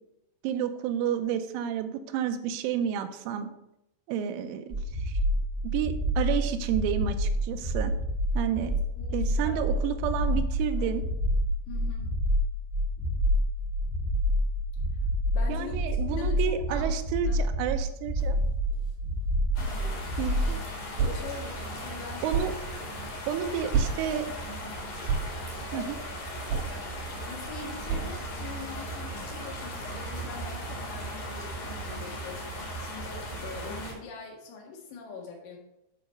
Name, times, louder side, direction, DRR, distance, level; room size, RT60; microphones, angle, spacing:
voice 1, 0.4-3.5 4.1-4.6 5.0-5.2 5.7-7.9 8.4-8.7 9.1-11.0 15.5-18.4 20.2-20.6 22.2-22.5 23.3-24.3 25.7-26.0, right 9 dB, 85° right, 7 dB, 3.0 m, -30 dB
sound 1, 4.7-20.5, equal, 25° right, 1.6 m, -28 dB
voice 2, 9.0-9.8 10.2-10.3 10.7-10.8 11.7-12.1 15.3-16.9 17.2-17.4 19.6-20.1 21.0-22.3 27.3-35.6, left 4 dB, 75° left, -1 dB, 4.0 m, -43 dB
sound 2, 17.6-28.5, right 6 dB, 65° right, 5.1 m, -35 dB
sound 3, 19.6-33.9, equal, 50° left, 3.2 m, -37 dB
10.0 x 3.9 x 5.4 m, 0.84 s
omnidirectional pair, 5.7 m